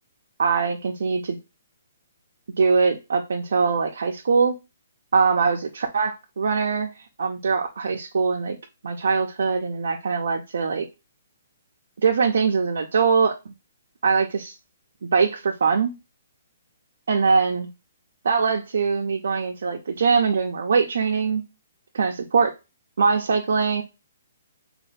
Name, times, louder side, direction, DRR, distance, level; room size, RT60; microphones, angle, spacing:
voice 1, 0.4-1.4 2.6-4.5 5.1-8.6 8.8-10.9 12.0-13.5 14.0-14.5 15.0-15.9 17.1-17.7 18.2-21.4 21.9-22.5 23.0-23.8, right 5 dB, 55° right, 2 dB, 0.5 m, -22 dB
4.2 x 2.3 x 3.2 m, 0.25 s
hypercardioid pair, 180°, 0 cm